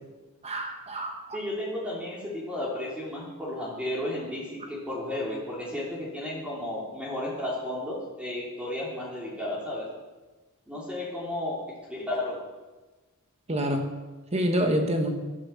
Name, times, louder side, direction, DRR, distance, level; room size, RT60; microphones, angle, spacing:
voice 1, 0.4-1.2 13.5-13.9 14.3-15.2, equal, 30° right, 4 dB, 1.5 m, -27 dB
voice 2, 1.3-9.9 10.7-11.6 11.9-12.4, left 1 dB, 5° right, -5 dB, 3.2 m, -33 dB
15.0 x 12.0 x 5.9 m, 1.2 s
head